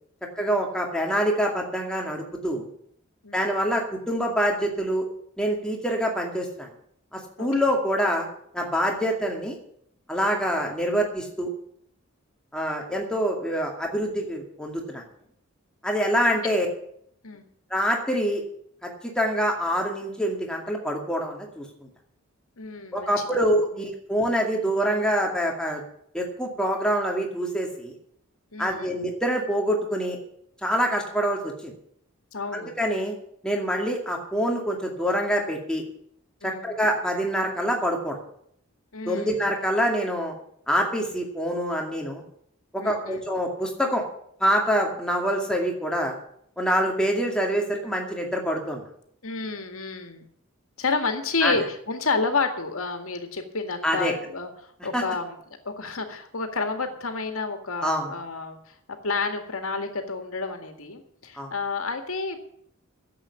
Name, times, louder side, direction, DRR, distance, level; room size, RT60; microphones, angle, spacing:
voice 1, 0.4-2.7 3.3-5.0 5.4-6.7 7.1-8.3 8.5-9.6 10.1-11.5 12.5-15.0 15.8-16.7 17.7-18.4 18.8-21.6 22.9-25.8 26.1-28.0 28.6-30.2 30.6-31.7 32.5-33.1 33.4-35.8 36.4-38.2 39.1-40.3 40.7-42.2 42.7-44.0 44.4-46.1 46.6-48.8 51.4-51.6 53.8-54.1 54.9-55.0 57.8-58.1 61.4-61.5, equal, 5° left, 0 dB, 2.3 m, -25 dB
voice 2, 7.4-7.7 17.2-17.4 22.6-23.1 23.7-23.8 28.5-29.0 32.3-32.7 36.4-36.7 38.9-39.4 42.8-43.2 49.2-50.3 50.8-55.3 55.7-58.7 59.0-62.5, left 4 dB, 75° left, 6 dB, 2.0 m, -30 dB
11.0 x 7.9 x 9.6 m, 0.68 s
head